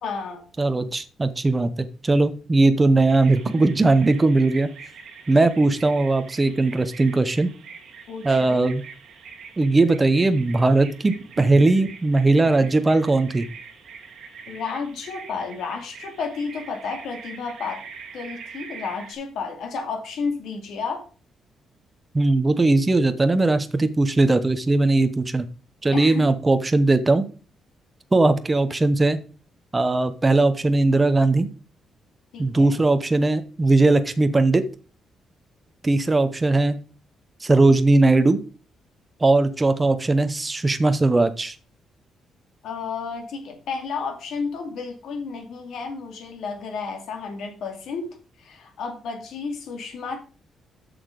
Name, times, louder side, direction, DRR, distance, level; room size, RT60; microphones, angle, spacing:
voice 1, 0.0-0.4 8.1-8.7 14.5-17.8 18.1-21.0 25.9-26.3 32.3-32.7 42.6-48.1 48.4-50.2, left 5 dB, 70° left, 4 dB, 2.4 m, -32 dB
voice 2, 0.6-1.7 2.0-4.7 5.3-7.5 8.2-8.8 9.6-13.5 22.1-25.5 25.8-27.3 28.1-29.2 29.7-31.5 32.4-34.6 35.8-36.8 37.4-38.4 39.2-41.5, right 2 dB, 15° right, 10 dB, 0.7 m, -19 dB
Bird vocalization bird call bird song, 3.1-19.1, right 5 dB, 60° right, 1.9 m, -42 dB
7.6 x 6.5 x 5.1 m, 0.37 s
cardioid pair, 155°, 0 cm